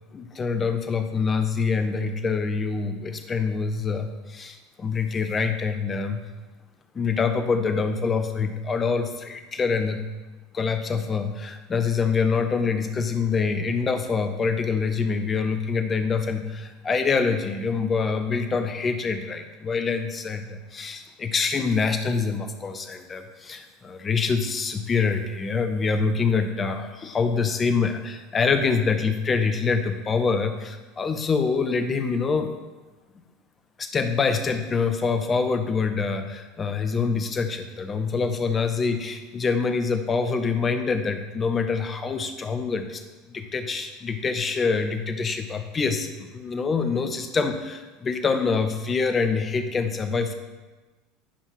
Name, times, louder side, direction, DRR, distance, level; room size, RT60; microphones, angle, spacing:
voice 1, 0.1-6.3 6.9-10.0 10.5-32.5 33.8-43.0 43.3-50.3, left 5 dB, 25° left, 8 dB, 0.8 m, -25 dB
10.0 x 5.5 x 3.0 m, 1.2 s
figure-of-eight pair, 75°, 0 cm